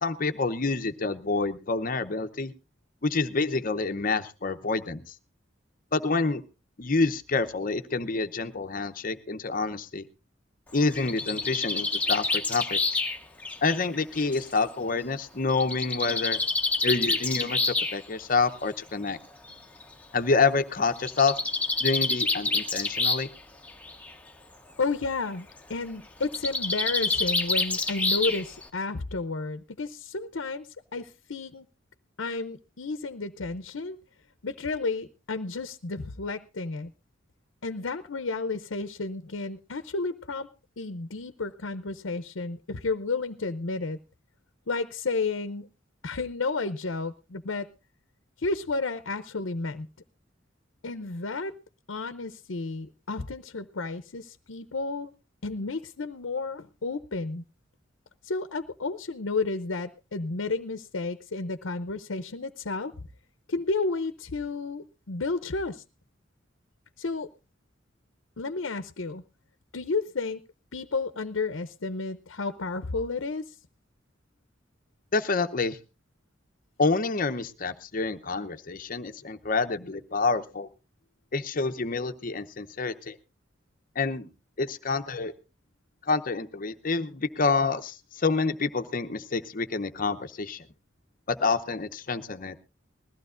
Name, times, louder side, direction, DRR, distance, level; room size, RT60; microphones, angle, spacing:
voice 1, 0.0-2.5 3.0-5.1 5.9-6.4 6.8-10.1 10.7-13.0 13.6-16.4 16.8-19.2 20.1-21.3 21.8-23.3 75.1-75.8 76.8-80.7 81.3-83.2 84.0-84.3 84.6-85.3 86.1-90.7 91.3-92.6, left 4 dB, 45° left, 0.8 m, -27 dB
Bird, 10.7-14.5 15.6-18.0 19.0-19.1 19.5-19.6 19.8-19.9 21.0-23.4 23.7-24.1 26.2-28.7, left 3 dB, 5° left, 1.1 m, -28 dB
voice 2, 24.8-31.7 32.2-34.0 34.4-36.9 37.6-40.5 40.8-44.0 44.7-45.7 46.0-47.7 48.4-49.9 50.8-51.5 51.9-55.1 55.4-57.4 58.2-62.9 63.5-65.8 67.0-67.3 68.4-69.2 69.7-70.4 70.7-73.5, left 3 dB, 80° left, 0.7 m, -32 dB
20.5 x 14.5 x 2.5 m
head